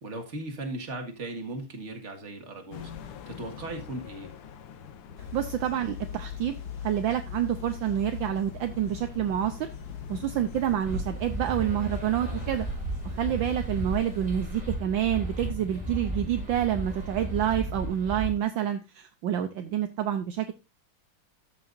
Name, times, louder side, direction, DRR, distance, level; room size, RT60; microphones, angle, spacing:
voice 1, 0.0-4.3 19.6-19.7, right 2 dB, 35° right, 3 dB, 1.9 m, -38 dB
sound 1, 2.7-10.7, left 7 dB, 85° left, 1.9 m, -46 dB
sound 2, 5.2-14.3, left 7 dB, 50° left, 1.9 m, -41 dB
voice 2, 5.3-6.6 6.8-9.7 10.1-12.7 13.1-20.5, right 11 dB, 70° right, 8 dB, 1.4 m, -28 dB
sound 3, 10.8-18.3, right 1 dB, 5° right, 3.7 m, -34 dB
13.0 x 6.8 x 2.6 m, 0.26 s
omnidirectional pair, 2.4 m